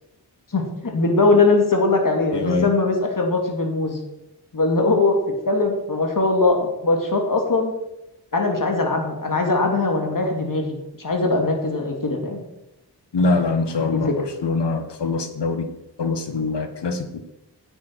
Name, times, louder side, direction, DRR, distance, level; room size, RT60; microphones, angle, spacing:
voice 1, 0.5-4.0 4.5-7.7 8.3-12.4 13.8-14.1, left 3 dB, 50° left, 2 dB, 2.4 m, -21 dB
voice 2, 2.3-2.7 13.1-15.7 16.0-17.2, left 3 dB, 70° left, 8 dB, 1.3 m, -23 dB
9.5 x 8.5 x 4.6 m, 0.90 s
cardioid pair, 50°, 43 cm